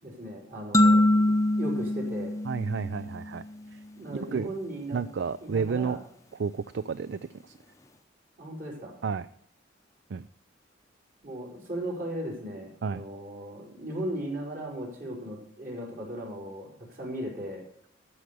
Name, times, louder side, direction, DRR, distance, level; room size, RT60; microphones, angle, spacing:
voice 1, 0.0-2.3 4.0-5.0 5.4-6.0 8.4-8.9 11.2-17.6, right 1 dB, 50° right, -2 dB, 4.8 m, -37 dB
sound 1, 0.7-3.4, left 1 dB, 15° left, 0.7 m, -23 dB
voice 2, 2.4-3.4 3.7-3.8 4.1-4.5 4.9-6.0 6.4-7.5 9.0-9.3 10.1-10.3 12.8-13.0, right 5 dB, 65° right, 15 dB, 0.4 m, -31 dB
13.5 x 6.6 x 6.8 m, 0.62 s
head